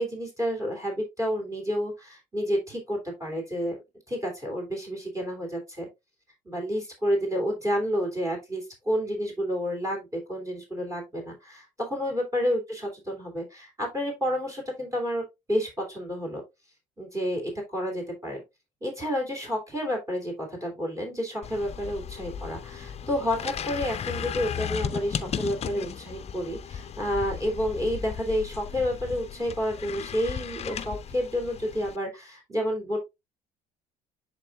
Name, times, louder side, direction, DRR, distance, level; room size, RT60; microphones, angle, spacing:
voice 1, 0.0-3.8 4.1-5.9 6.4-16.4 17.0-18.4 18.8-33.0, equal, 20° right, 2 dB, 2.9 m, -30 dB
sound 1, 21.4-32.0, left 8 dB, 35° left, 0.6 m, -36 dB
10.5 x 3.9 x 2.3 m, 0.22 s
hypercardioid pair, 70°, 18 cm